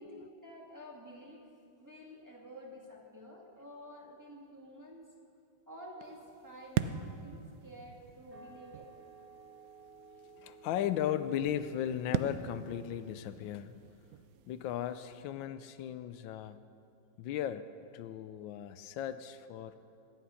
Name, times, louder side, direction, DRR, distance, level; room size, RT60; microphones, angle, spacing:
voice 1, 0.0-1.4 1.8-5.1 5.7-8.9, equal, 10° right, -3 dB, 1.9 m, -50 dB
sound 1, 6.0-15.2, right 10 dB, 85° right, 0.7 m, -42 dB
sound 2, 8.3-13.7, right 4 dB, 60° right, 2.5 m, -57 dB
voice 2, 10.3-13.7 14.5-16.6 17.2-17.7 17.9-19.8, left 10 dB, 85° left, 12 dB, 1.3 m, -36 dB
17.5 x 11.0 x 5.7 m, 2.6 s
omnidirectional pair, 2.1 m